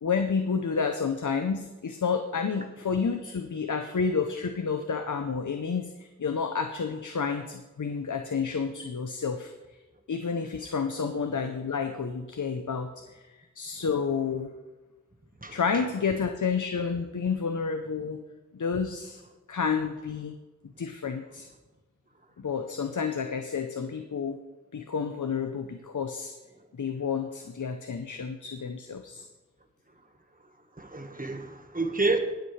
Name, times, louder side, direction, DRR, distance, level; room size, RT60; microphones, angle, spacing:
voice 1, 0.0-5.9 6.2-9.5 10.1-13.2 13.6-14.5 15.5-18.2 18.5-19.2 19.5-20.4 20.8-21.5 22.4-24.4 24.7-26.3 26.8-29.3, left 5 dB, 75° left, 6 dB, 0.8 m, -30 dB
voice 2, 15.4-15.8 30.8-32.2, right 3 dB, 30° right, 5 dB, 1.5 m, -29 dB
19.0 x 8.0 x 3.3 m, 1.2 s
wide cardioid pair, 40°, 30 cm